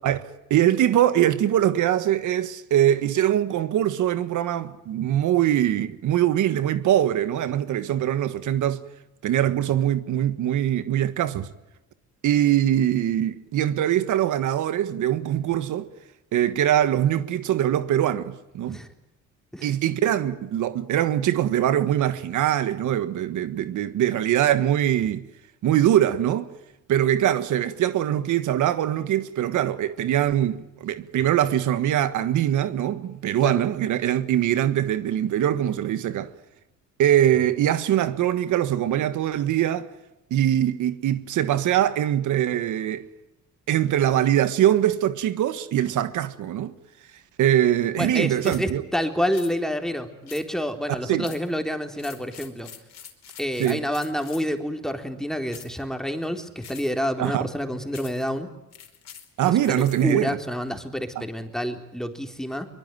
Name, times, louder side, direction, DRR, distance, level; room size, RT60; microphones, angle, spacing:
voice 1, 0.5-8.8 9.2-11.5 12.2-15.9 16.3-18.8 19.6-25.2 25.6-26.5 26.9-36.3 37.0-39.9 40.3-43.1 43.7-46.7 47.4-48.8 51.1-51.3 53.6-53.8 57.2-57.5 59.4-60.4 61.1-61.2, right 11 dB, 80° right, 1.6 m, -22 dB
voice 2, 48.0-52.7 53.4-58.5 59.4-62.7, equal, ahead, 3.9 m, -28 dB
sound 1, 48.4-48.7 49.3-49.5 50.3-50.7 51.2-51.5 52.0-54.6 55.5-55.8 56.6-57.1 57.9-58.3 58.7-60.1, left 8 dB, 60° left, 4.7 m, -45 dB
24.0 x 22.0 x 9.3 m
cardioid pair, 90°, 30 cm